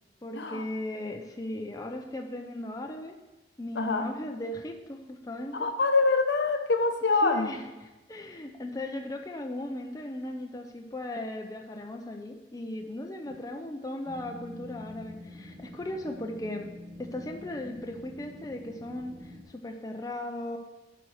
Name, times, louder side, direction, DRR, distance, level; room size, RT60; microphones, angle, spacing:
voice 1, 0.2-3.2 3.6-5.7 7.2-16.7 17.0-20.6, left 1 dB, 20° left, 3 dB, 0.5 m, -37 dB
voice 2, 3.8-4.1 5.5-7.5 13.3-13.4, left 3 dB, 70° left, 7 dB, 0.8 m, -25 dB
sound 1, 14.0-19.4, left 1 dB, 30° right, 0.9 m, -46 dB
9.1 x 4.4 x 6.3 m, 1.1 s
head